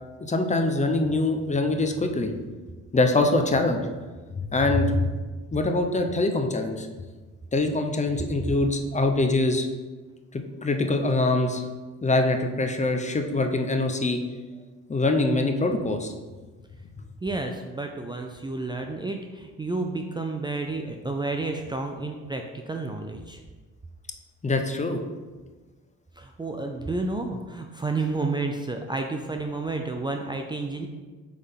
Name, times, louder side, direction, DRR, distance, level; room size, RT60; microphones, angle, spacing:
voice 1, 0.2-2.3 2.9-3.9 4.5-5.0 5.5-6.9 7.5-9.7 10.3-11.6 12.0-14.2 14.9-16.1 24.4-25.0, left 2 dB, 25° left, 5 dB, 0.7 m, -24 dB
voice 2, 17.2-23.4 26.2-30.9, right 3 dB, 15° right, 3 dB, 0.4 m, -31 dB
7.8 x 3.7 x 3.7 m, 1.3 s
cardioid pair, 90°, 30 cm